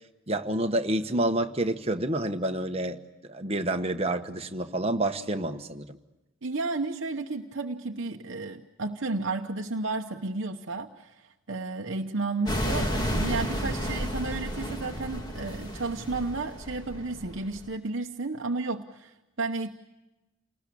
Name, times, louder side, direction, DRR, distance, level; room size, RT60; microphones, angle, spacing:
voice 1, 0.3-6.0, right 1 dB, 30° right, 5 dB, 1.2 m, -28 dB
voice 2, 6.4-19.7, right 3 dB, 60° right, 3 dB, 1.0 m, -32 dB
sound 1, 12.5-17.7, equal, 20° left, 2.1 m, -32 dB
29.0 x 19.5 x 8.5 m, 1.1 s
head